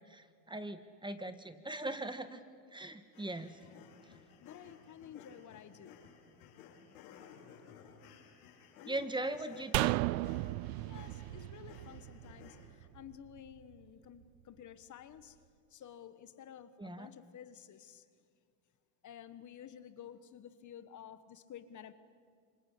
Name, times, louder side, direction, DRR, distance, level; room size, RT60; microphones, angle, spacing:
voice 1, 0.1-2.4 2.7-3.6 8.9-10.0 16.8-17.1, right 2 dB, 10° right, 10 dB, 1.6 m, -40 dB
sound 1, 3.1-12.7, left 7 dB, 80° left, 5.7 m, -57 dB
voice 2, 4.4-6.0 8.8-9.4 10.8-15.4 15.7-18.0 19.0-21.9, left 9 dB, 40° left, 12 dB, 1.5 m, -52 dB
sound 2, 9.7-13.1 13.4-13.5, right 20 dB, 75° right, 0.6 m, -35 dB
27.0 x 23.5 x 8.6 m, 2.1 s
supercardioid pair, 90°, 43 cm